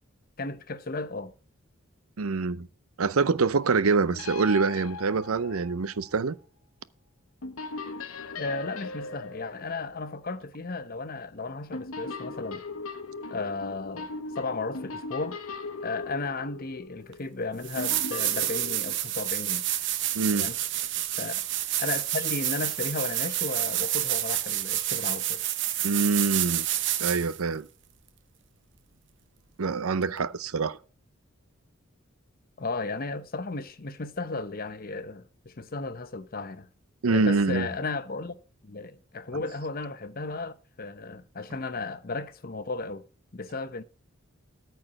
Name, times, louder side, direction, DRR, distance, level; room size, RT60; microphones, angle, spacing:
voice 1, 0.4-1.3 8.4-12.6 13.3-14.1 14.4-15.4 15.8-19.7 20.3-20.6 21.2-21.4 21.8-25.4 32.6-36.7 37.1-38.4 38.6-43.0 43.3-43.8, left 3 dB, 45° left, 0.9 m, -34 dB
voice 2, 2.2-2.7 3.0-6.4 20.1-20.5 25.8-26.7 27.0-27.7 29.6-30.8 37.0-37.7, right 4 dB, 90° right, 0.7 m, -25 dB
sound 1, 4.1-6.2 7.4-10.6 11.7-18.9, left 3 dB, 80° left, 1.1 m, -39 dB
sound 2, 17.1-17.2 17.6-27.4 30.2-30.3, right 13 dB, 60° right, 0.9 m, -29 dB
13.5 x 4.6 x 8.6 m
head